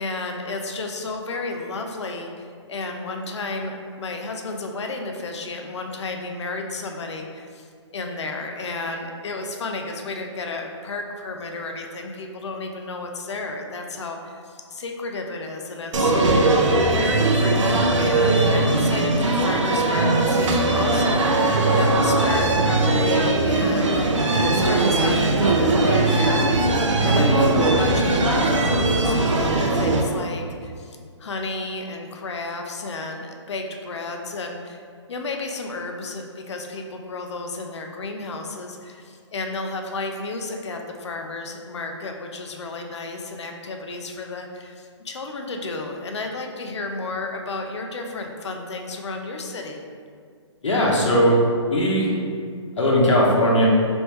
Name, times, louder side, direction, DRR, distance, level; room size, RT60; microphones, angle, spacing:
voice 1, 0.0-16.6 16.9-21.2 21.7-26.7 27.0-34.8 35.1-49.8, left 3 dB, 65° left, 3 dB, 0.5 m, -32 dB
sound 1, 15.9-30.0, right 2 dB, 85° right, 0.5 m, -19 dB
voice 2, 50.6-51.4 51.7-52.1 52.8-53.7, equal, 85° left, -4 dB, 1.0 m, -18 dB
3.1 x 3.1 x 3.1 m, 2.1 s
hypercardioid pair, 165°, 16 cm